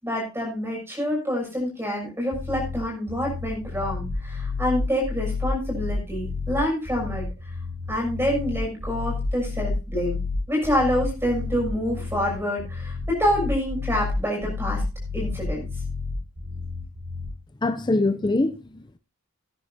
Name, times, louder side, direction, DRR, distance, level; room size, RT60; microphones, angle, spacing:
voice 1, 0.0-7.3 7.9-10.2 10.5-14.8 15.1-15.6, equal, 10° right, 6.4 m, -27 dB
sound 1, 2.3-17.3, left 3 dB, 60° right, 4.9 m, -30 dB
voice 2, 17.6-19.0, left 2 dB, 20° left, 0.5 m, -24 dB
18.5 x 10.0 x 2.7 m
head